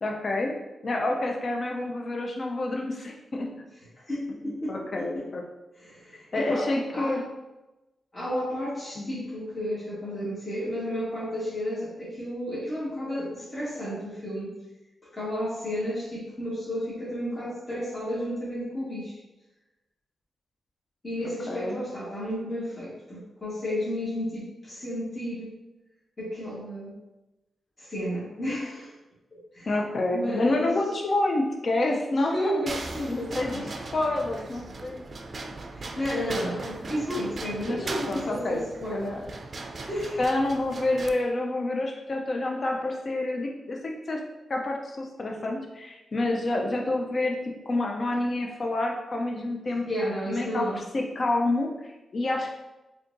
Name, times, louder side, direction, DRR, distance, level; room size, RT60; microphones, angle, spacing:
voice 1, 0.0-0.5 0.8-3.5 4.4-5.4 6.3-7.2 9.0-9.2 21.5-21.8 29.7-32.6 33.1-35.0 37.6-38.6 38.9-39.2 40.2-44.2 44.5-49.8 50.3-50.7 50.9-51.7 52.1-52.5, left 2 dB, 55° left, 1 dB, 0.5 m, -28 dB
voice 2, 4.0-5.3 5.7-7.2 8.1-14.6 15.1-19.2 21.0-25.6 26.2-27.0 27.8-28.9 29.3-29.7 30.1-30.7 32.3-33.6 35.8-39.2 39.9-40.2 49.9-50.8, equal, 35° left, -9 dB, 1.4 m, -32 dB
sound 1, 32.7-41.1, right 3 dB, 50° right, 0.4 m, -38 dB
4.2 x 2.8 x 2.6 m, 1.0 s
cardioid pair, 55°, 0 cm